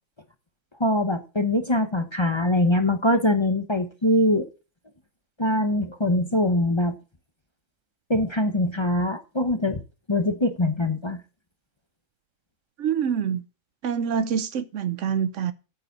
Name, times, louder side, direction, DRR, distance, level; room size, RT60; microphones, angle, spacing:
voice 1, 0.8-4.5 5.4-6.9 8.1-9.8 10.1-11.2, left 1 dB, 25° left, 0.8 m, -23 dB
voice 2, 12.8-13.4 13.8-15.5, right 7 dB, 65° right, 1.0 m, -26 dB
9.1 x 6.8 x 6.7 m
omnidirectional pair, 1.4 m